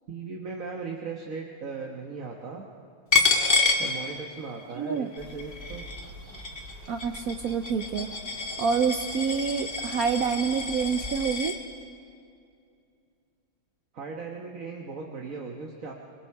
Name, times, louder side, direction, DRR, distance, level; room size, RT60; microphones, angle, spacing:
voice 1, 0.1-2.6 3.8-5.8 13.9-15.9, right 4 dB, 45° right, 1 dB, 1.5 m, -37 dB
Coin (dropping), 3.1-4.6 5.0-11.6, left 4 dB, 30° left, 1.3 m, -28 dB
voice 2, 4.8-5.1 6.9-8.1 8.6-11.5, right 6 dB, 75° right, 7 dB, 0.8 m, -27 dB
sound 1, 5.2-11.2, equal, 25° right, 3.1 m, -46 dB
27.5 x 20.0 x 4.8 m, 2.4 s
omnidirectional pair, 2.4 m